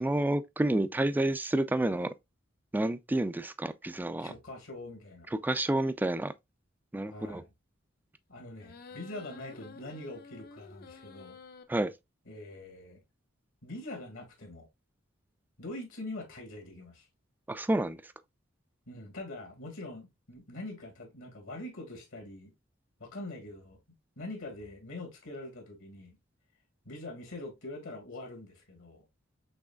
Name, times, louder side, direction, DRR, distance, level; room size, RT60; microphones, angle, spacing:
voice 1, 0.0-2.1 2.7-4.3 5.3-6.3 6.9-7.4 11.7-11.9 17.5-18.0, right 1 dB, 10° right, 0.3 m, -29 dB
voice 2, 4.2-5.3 7.1-7.5 8.3-11.4 12.3-13.0 13.6-14.7 15.6-17.1 18.9-22.5 23.0-23.8 24.2-26.2 26.9-29.0, left 2 dB, 75° left, 1.8 m, -43 dB
sound 1, 8.6-11.6, left 5 dB, 50° left, 0.6 m, -50 dB
6.2 x 3.1 x 2.2 m
head